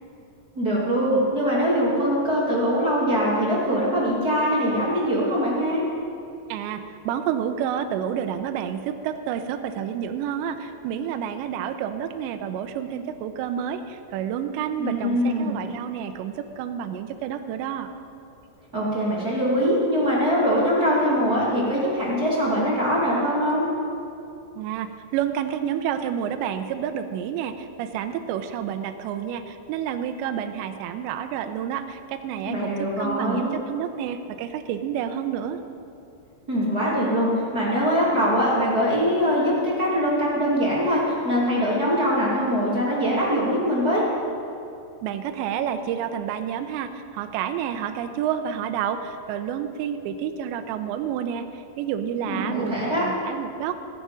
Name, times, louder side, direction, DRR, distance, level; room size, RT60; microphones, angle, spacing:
voice 1, 0.6-5.8 14.8-15.6 18.7-23.7 32.4-33.5 36.5-44.0 52.3-53.1, equal, 30° right, -6 dB, 1.7 m, -22 dB
voice 2, 6.5-17.9 24.6-35.6 45.0-53.9, right 9 dB, 85° right, 7 dB, 2.8 m, -29 dB
20.5 x 9.4 x 5.0 m, 2.7 s
omnidirectional pair, 5.5 m